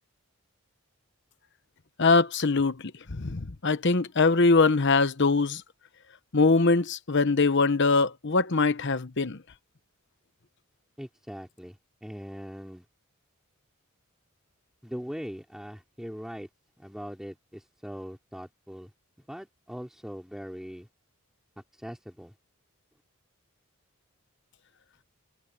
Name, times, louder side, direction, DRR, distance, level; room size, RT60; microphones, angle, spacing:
voice 1, 2.0-5.6 6.3-9.4, left 3 dB, 55° left, 1.0 m, -23 dB
voice 2, 11.0-12.8 14.8-16.5 16.8-18.9 19.3-20.9 21.8-22.3, equal, ahead, 3.3 m, -41 dB
head